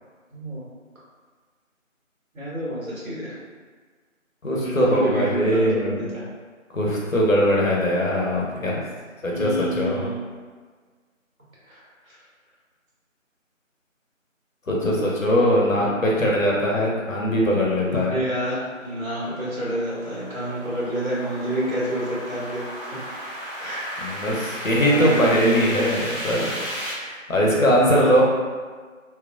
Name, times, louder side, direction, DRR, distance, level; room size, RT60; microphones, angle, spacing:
voice 1, 0.3-0.6 2.3-3.3 4.6-6.2 9.3-10.2 11.7-12.2 15.7-15.9 17.9-22.6 22.9-23.0 23.6-24.2 24.7-25.4 27.7-28.2, right 1 dB, 85° right, -8 dB, 1.4 m, -29 dB
voice 2, 4.4-6.1 6.7-8.8 9.2-10.1 14.7-18.2 24.0-26.5 26.9-28.2, equal, 75° left, -3 dB, 0.8 m, -21 dB
sound 1, 17.9-26.9, equal, 45° left, 0.6 m, -35 dB
2.9 x 2.2 x 2.4 m, 1.5 s
figure-of-eight pair, 175°, 40 cm